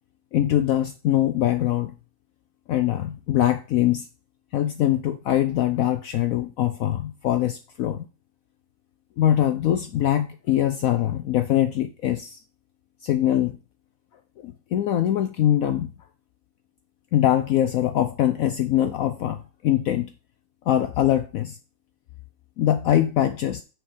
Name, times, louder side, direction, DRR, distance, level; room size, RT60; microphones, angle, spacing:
voice 1, 0.3-1.9 2.7-4.1 4.5-8.1 9.2-12.4 13.0-13.6 14.4-15.9 17.1-20.1 20.7-21.6 22.6-23.6, left 12 dB, 70° left, 9 dB, 0.9 m, -23 dB
6.4 x 4.4 x 4.9 m, 0.34 s
omnidirectional pair, 1.7 m